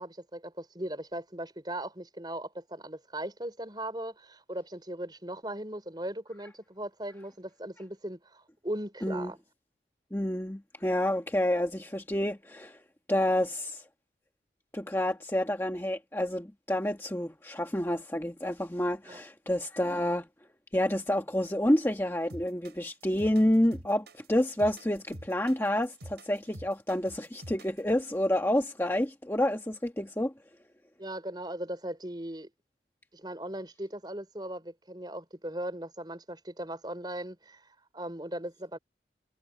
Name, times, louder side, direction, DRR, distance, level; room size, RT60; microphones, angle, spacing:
voice 1, 0.0-9.4 19.1-19.2 31.0-32.5 33.1-37.6 37.9-38.8, right 1 dB, 25° right, 5.0 m, -38 dB
voice 2, 10.1-12.8 13.1-13.8 14.7-20.3 20.7-30.3, left 1 dB, 15° left, 1.2 m, -29 dB
sound 1, 22.3-27.9, right 1 dB, 65° right, 6.4 m, -46 dB
head